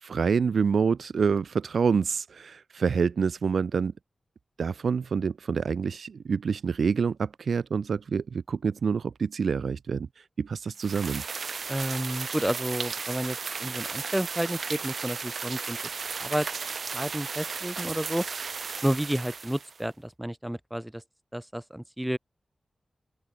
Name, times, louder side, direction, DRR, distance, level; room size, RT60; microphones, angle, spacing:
voice 1, 0.0-3.9 4.6-10.1 10.4-11.2, right 6 dB, 85° right, 2.9 m, -27 dB
sound 1, 10.8-19.8, right 5 dB, 65° right, 4.9 m, -35 dB
voice 2, 11.7-15.8 16.2-16.5 16.9-18.3 18.8-21.0 21.3-22.2, right 1 dB, 5° right, 5.2 m, -31 dB
open air
wide cardioid pair, 140°, 0 cm